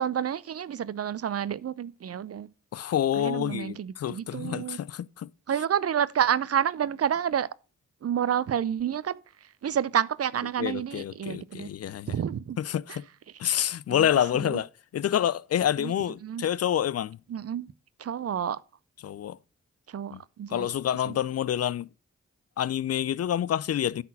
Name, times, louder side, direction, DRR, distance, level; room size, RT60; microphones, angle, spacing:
voice 1, 0.0-2.5 3.2-4.8 5.5-7.5 8.0-9.2 9.6-11.7 12.1-12.6 12.9-13.0 13.9-14.1 14.3-14.6 15.8-15.9 16.2-16.4 17.3-17.7 18.0-18.6 19.9-20.7 21.1-21.2, right 9 dB, 55° right, 0.6 m, -29 dB
voice 2, 2.7-5.3 10.6-12.1 12.6-13.0 13.4-17.2 19.0-19.4 20.1-20.2 20.5-21.9 22.6-24.0, left 10 dB, 55° left, 0.4 m, -28 dB
9.2 x 4.3 x 5.6 m
supercardioid pair, 40°, 29 cm